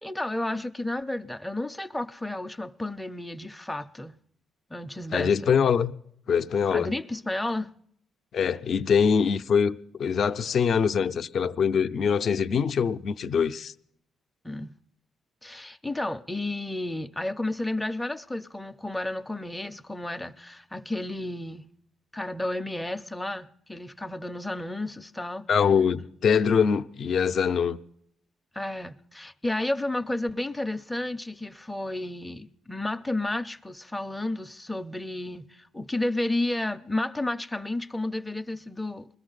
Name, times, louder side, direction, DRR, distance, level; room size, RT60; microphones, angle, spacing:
voice 1, 0.0-4.2 4.7-5.5 6.7-7.7 14.4-14.7 15.4-21.7 22.1-25.5 28.5-39.1, left 1 dB, 5° left, 0.5 m, -32 dB
voice 2, 5.1-5.9 6.3-6.9 8.3-13.7 25.5-27.8, left 6 dB, 60° left, 0.5 m, -23 dB
21.0 x 14.0 x 3.9 m
cardioid pair, 90°, 0 cm